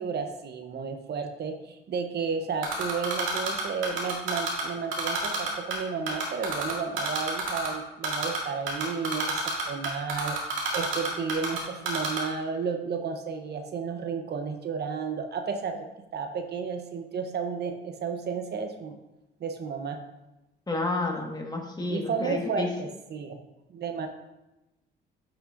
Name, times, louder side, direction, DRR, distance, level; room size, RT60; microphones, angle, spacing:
voice 1, 0.0-9.4 9.7-19.0 19.4-20.0 21.9-23.4 23.7-24.1, right 5 dB, 55° right, 6 dB, 0.8 m, -32 dB
Typing, 2.6-4.6 4.9-5.8 6.1-7.7 8.0-8.4 8.7-11.6 11.9-12.2, right 5 dB, 80° right, 2.1 m, -29 dB
voice 2, 20.7-22.7, left 2 dB, 20° left, 1 dB, 1.5 m, -30 dB
9.6 x 5.9 x 2.5 m, 0.96 s
cardioid pair, 90°, 20 cm